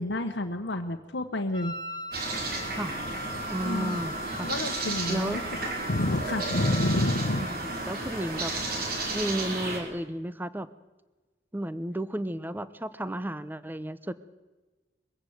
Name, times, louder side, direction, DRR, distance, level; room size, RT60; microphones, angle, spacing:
voice 1, 0.0-1.7 3.6-4.0 4.4-5.4 5.9-7.5, left 1 dB, 85° left, 5 dB, 1.3 m, -29 dB
Wind instrument woodwind instrument, 1.5-8.1, equal, 25° left, 1.8 m, -39 dB
sound 1, 2.1-9.8, right 2 dB, 60° right, 4.7 m, -33 dB
voice 2, 3.5-4.5 5.1-5.4 7.4-8.5 9.1-10.7 11.5-14.1, right 1 dB, 10° right, 15 dB, 0.8 m, -33 dB
22.5 x 15.5 x 8.1 m, 1.2 s
head